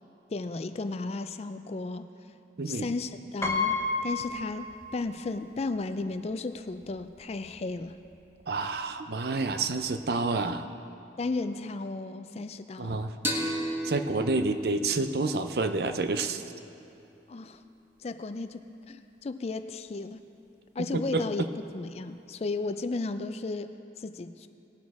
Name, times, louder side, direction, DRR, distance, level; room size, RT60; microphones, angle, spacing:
voice 1, 0.3-2.1 2.7-8.0 11.2-13.1 17.3-17.6 18.0-20.2 20.8-21.4 21.7-24.5, left 3 dB, 35° left, 10 dB, 0.3 m, -34 dB
Piano, 3.4-5.2 5.6-5.7 6.8-6.9 7.2-7.5, left 3 dB, 15° left, 0.7 m, -31 dB
voice 2, 8.5-10.7 12.8-13.2 13.8-16.4 20.8-21.5, right 3 dB, 55° right, 8 dB, 0.5 m, -29 dB
sound 1, 13.2-16.6, right 1 dB, 15° right, 1.1 m, -35 dB
18.5 x 6.3 x 4.7 m, 2.8 s
head